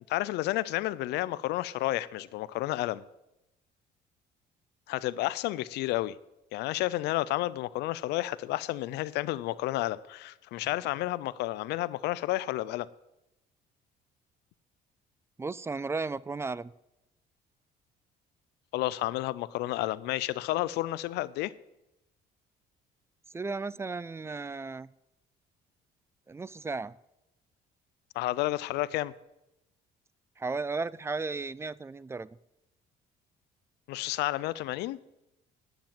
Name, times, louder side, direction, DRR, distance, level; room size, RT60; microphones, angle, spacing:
voice 1, 0.1-3.0 4.9-6.2 6.5-12.9 18.7-21.5 28.1-29.1 33.9-35.0, left 16 dB, 85° left, 0.5 m, -31 dB
voice 2, 15.4-16.7 23.3-24.9 26.3-27.0 30.4-32.3, right 3 dB, 15° right, 0.3 m, -34 dB
10.5 x 7.4 x 8.8 m
cardioid pair, 110°, 17 cm